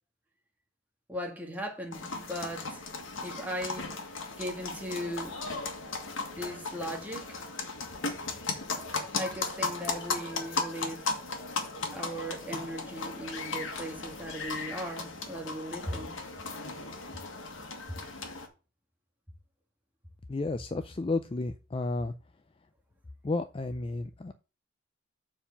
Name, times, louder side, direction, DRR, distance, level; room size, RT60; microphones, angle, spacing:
voice 1, 1.1-2.8 3.2-4.0 4.4-5.4 6.4-7.4 9.2-11.1 11.9-16.2 17.9-18.0, equal, 10° right, 1.8 m, -38 dB
sound 1, 1.9-18.5, left 4 dB, 75° left, 1.7 m, -36 dB
voice 2, 20.3-22.1 23.2-24.3, left 3 dB, 25° left, 0.4 m, -32 dB
7.2 x 4.5 x 7.0 m
head